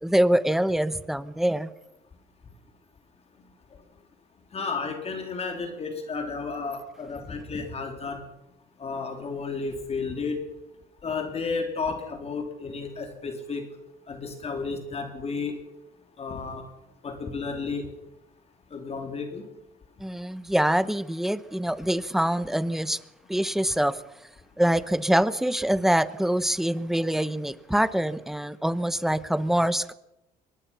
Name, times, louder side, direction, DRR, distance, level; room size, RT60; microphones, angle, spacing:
voice 1, 0.0-1.7 20.0-23.0 23.3-24.0 24.6-29.9, right 1 dB, ahead, 15 dB, 0.9 m, -24 dB
voice 2, 4.5-8.2 8.8-10.4 11.0-13.6 14.1-15.5 16.2-16.6 17.0-17.8 18.7-19.4, left 4 dB, 35° left, 5 dB, 3.3 m, -32 dB
23.0 x 19.5 x 5.8 m, 0.91 s
cardioid pair, 110°, 17 cm